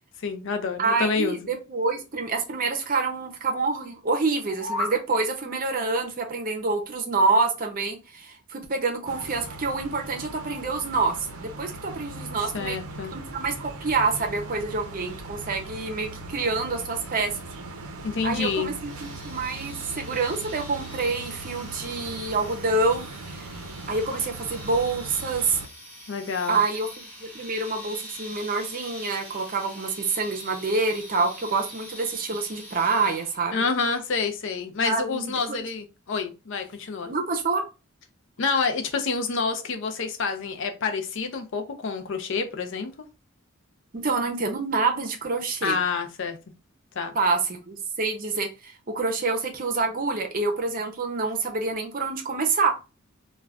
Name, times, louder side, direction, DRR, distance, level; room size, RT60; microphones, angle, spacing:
voice 1, 0.2-1.4 12.5-13.1 18.0-18.7 26.1-26.6 33.5-37.1 38.4-42.9 45.6-46.4 47.0-47.1, left 4 dB, 60° left, 7 dB, 0.5 m, -28 dB
voice 2, 0.8-11.1 11.4-12.8 13.1-17.3 18.2-23.5 23.9-25.6 26.5-26.9 27.2-33.6 34.8-35.6 37.1-37.6 43.9-45.8 47.1-52.7, right 3 dB, 40° right, 4 dB, 0.6 m, -27 dB
sound 1, 4.3-5.0, left 2 dB, 80° left, 1.1 m, -31 dB
sound 2, 9.0-25.7, right 2 dB, 85° right, 0.6 m, -39 dB
sound 3, 18.8-33.6, equal, 5° left, 0.9 m, -44 dB
2.4 x 2.2 x 3.3 m, 0.29 s
head